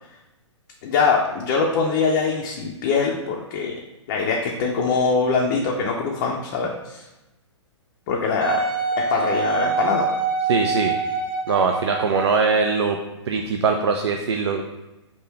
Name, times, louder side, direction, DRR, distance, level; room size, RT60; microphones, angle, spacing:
voice 1, 0.8-3.8 4.1-7.0 8.1-8.6 9.0-10.1, left 4 dB, 35° left, -1 dB, 0.5 m, -23 dB
Wind instrument woodwind instrument, 8.4-12.7 13.4-13.5, right 4 dB, 25° right, 0.8 m, -25 dB
voice 2, 10.5-11.0 11.5-13.0 13.3-14.6, right 5 dB, 65° right, 4 dB, 0.4 m, -21 dB
3.5 x 2.7 x 4.2 m, 1.0 s
figure-of-eight pair, 115°, 15 cm